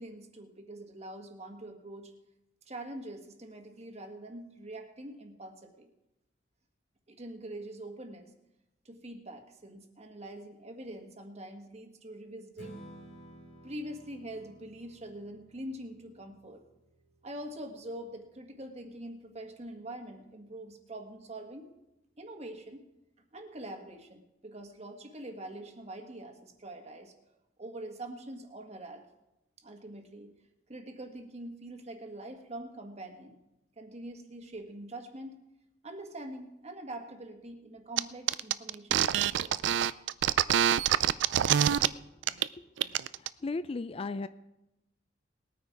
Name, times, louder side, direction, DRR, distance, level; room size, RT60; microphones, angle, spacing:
voice 1, 0.0-2.1 2.7-5.9 7.1-8.3 8.8-12.8 13.6-16.6 17.2-21.7 22.2-22.8 23.3-27.1 27.6-29.0 29.6-30.3 30.7-33.4 33.8-35.4 35.8-39.7, right 1 dB, 35° right, 5 dB, 1.5 m, -44 dB
Strum, 12.6-18.9, right 1 dB, 80° left, 2.5 m, -54 dB
sound 1, 38.0-38.1 38.3-41.9 42.2-42.5 42.8-43.3, right 10 dB, 80° right, 0.4 m, -25 dB
voice 2, 43.2-44.3, left 3 dB, 30° left, 13 dB, 0.4 m, -36 dB
19.5 x 9.3 x 4.7 m, 0.91 s
head